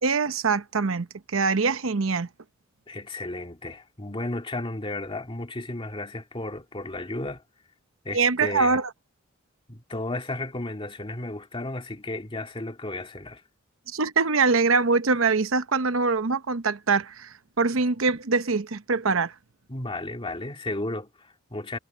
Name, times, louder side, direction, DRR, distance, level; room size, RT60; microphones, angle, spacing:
voice 1, 0.0-2.3 8.1-8.9 13.9-19.3, right 4 dB, 85° right, 0.9 m, -23 dB
voice 2, 2.9-7.4 8.0-8.8 9.7-13.4 19.7-21.8, left 2 dB, 25° left, 2.2 m, -33 dB
head